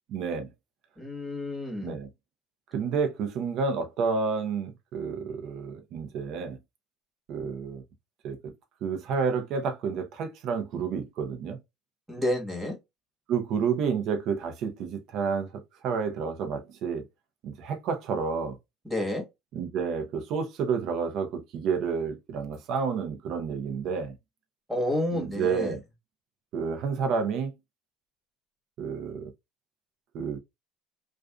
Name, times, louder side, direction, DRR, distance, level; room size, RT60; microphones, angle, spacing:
voice 1, 0.1-0.5 1.8-2.1 2.7-6.6 7.3-7.8 8.2-8.4 8.8-11.6 13.3-15.5 15.8-17.0 17.4-18.6 19.5-24.1 25.1-25.8 26.5-27.5 28.8-29.3 30.1-30.4, right 5 dB, 60° right, 0.7 m, -30 dB
voice 2, 1.0-2.0 12.1-12.8 18.8-19.2 24.7-25.7, left 1 dB, 10° right, 1.3 m, -30 dB
2.4 x 2.4 x 2.3 m
supercardioid pair, 90°, 0 cm